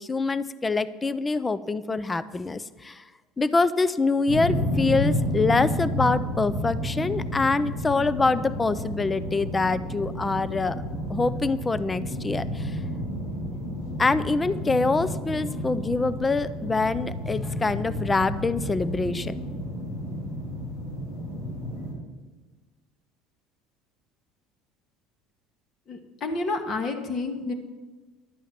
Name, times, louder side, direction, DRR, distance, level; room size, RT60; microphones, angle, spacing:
voice 1, 0.0-3.0 3.4-10.8 11.1-12.8 14.0-19.4, left 3 dB, 15° left, 16 dB, 0.4 m, -25 dB
sound 1, 4.3-21.9, equal, 90° left, 4.6 m, -31 dB
voice 2, 25.9-27.5, left 3 dB, 40° left, 6 dB, 1.6 m, -29 dB
11.5 x 9.1 x 5.8 m, 1.3 s
cardioid pair, 135°, 0 cm